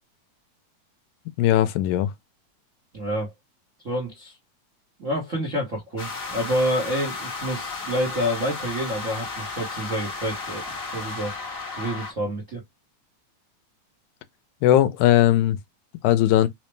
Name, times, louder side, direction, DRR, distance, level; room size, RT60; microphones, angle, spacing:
voice 1, 1.4-2.1 14.6-15.6 16.0-16.5, left 12 dB, 85° left, 2.0 m, -18 dB
voice 2, 2.9-3.3 3.8-4.4 5.0-10.6 10.9-11.3 11.7-12.6, equal, 85° right, 0.6 m, -28 dB
sound 1, 6.0-12.1, left 3 dB, 60° left, 0.6 m, -33 dB
4.9 x 2.0 x 3.1 m
omnidirectional pair, 3.4 m